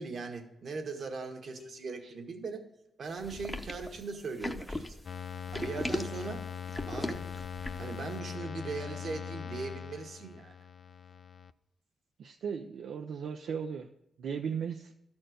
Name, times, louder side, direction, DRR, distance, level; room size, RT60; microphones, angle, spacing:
voice 1, 0.0-2.6 3.0-5.0 5.5-6.4 6.9-7.3 7.8-10.5, right 4 dB, 70° right, 3 dB, 1.5 m, -39 dB
sound 1, 1.6-3.5, left 6 dB, 90° left, 1.3 m, -59 dB
sound 2, 3.2-8.0, left 1 dB, 20° left, 0.7 m, -38 dB
sound 3, 5.0-11.5, left 7 dB, 60° left, 0.4 m, -41 dB
voice 2, 12.2-13.9 14.2-14.9, right 7 dB, 90° right, 4 dB, 0.5 m, -36 dB
12.5 x 4.4 x 7.8 m, 0.81 s
cardioid pair, 80°, 0 cm